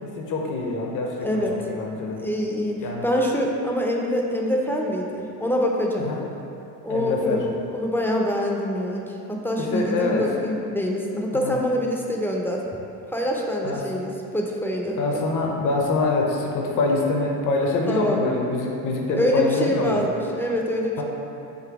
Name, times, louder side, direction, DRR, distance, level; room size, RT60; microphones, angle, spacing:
voice 1, 0.0-2.2 2.8-3.0 6.0-6.2 6.9-7.4 9.6-10.3 11.3-11.6 13.6-13.8 15.0-20.1 21.0-21.1, left 3 dB, 45° left, -1 dB, 0.7 m, -25 dB
voice 2, 1.2-1.5 2.2-6.1 6.8-12.6 13.1-15.2 17.9-18.2 19.2-21.0, equal, 5° left, -1 dB, 0.5 m, -25 dB
4.0 x 2.6 x 4.7 m, 2.8 s
supercardioid pair, 75°, 42 cm